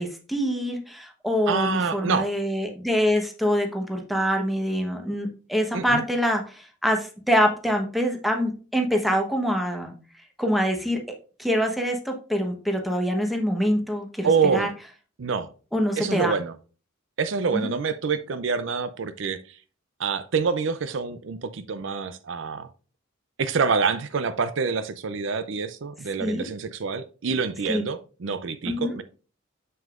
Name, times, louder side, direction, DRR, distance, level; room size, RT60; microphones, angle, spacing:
voice 1, 0.0-9.9 10.4-11.0 11.4-14.7 15.7-16.4 17.5-17.7 26.2-26.5 27.7-27.8 28.6-29.0, equal, ahead, 1.0 m, -25 dB
voice 2, 1.5-2.3 5.7-6.0 14.2-14.7 15.2-15.5 16.0-16.6 17.2-19.4 20.0-22.7 23.4-29.0, right 5 dB, 70° right, 0.5 m, -26 dB
7.0 x 6.2 x 2.5 m
head